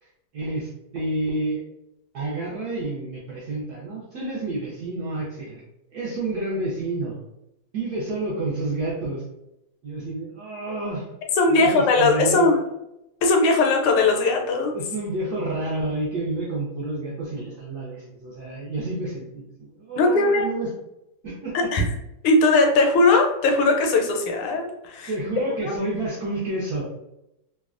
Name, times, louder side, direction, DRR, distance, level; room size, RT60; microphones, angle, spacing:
voice 1, 0.0-1.6 2.1-5.6 5.9-7.2 7.7-9.2 9.8-11.1 11.5-12.6 14.7-20.7 21.2-21.7 25.1-26.8, right 2 dB, 70° right, -6 dB, 0.9 m, -29 dB
voice 2, 11.4-12.6 13.2-14.7 20.0-20.4 21.5-21.8 22.2-25.1 25.6-25.7, left 3 dB, 80° left, 2 dB, 1.4 m, -19 dB
3.3 x 2.1 x 2.4 m, 0.88 s
omnidirectional pair, 2.3 m